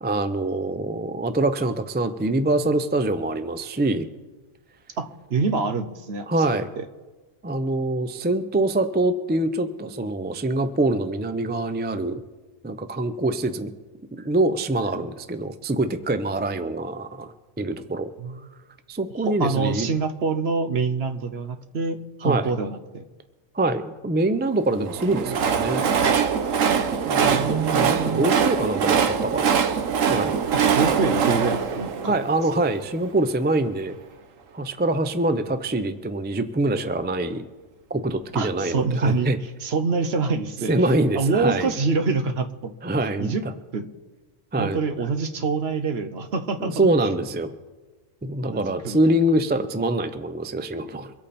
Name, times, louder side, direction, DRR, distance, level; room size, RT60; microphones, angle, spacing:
voice 1, 0.0-4.1 6.3-6.7 7.4-12.2 12.6-13.7 14.1-18.1 18.9-19.9 22.2-22.5 23.5-25.8 27.0-29.6 30.0-30.4 32.1-34.0 34.5-37.5 37.9-39.4 40.7-41.7 42.8-43.4 44.5-44.8 46.6-47.5 48.2-51.1, right 2 dB, 15° right, 10 dB, 0.4 m, -24 dB
voice 2, 5.0-6.4 6.8-6.9 18.2-18.4 19.2-23.0 27.2-28.3 30.5-32.2 38.3-39.3 39.6-40.9 41.1-42.7 43.2-43.4 43.7-43.9 44.6-46.9 48.4-49.2, right 4 dB, 55° right, 9 dB, 1.1 m, -26 dB
Train, 24.8-33.0, right 7 dB, 85° right, 1.3 m, -23 dB
24.5 x 8.6 x 4.3 m, 1.2 s
omnidirectional pair, 1.3 m